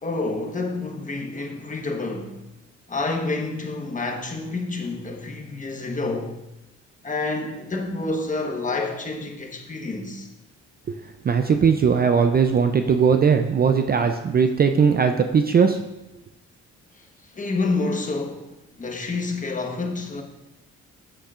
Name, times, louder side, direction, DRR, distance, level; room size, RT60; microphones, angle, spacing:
voice 1, 0.0-2.4 2.9-6.3 7.0-10.3 16.9-18.5 18.7-20.2, left 3 dB, 25° left, 1.2 m, -28 dB
voice 2, 11.2-15.8, right 6 dB, 30° right, 0.4 m, -19 dB
8.6 x 7.6 x 2.4 m
cardioid pair, 90°, 30 cm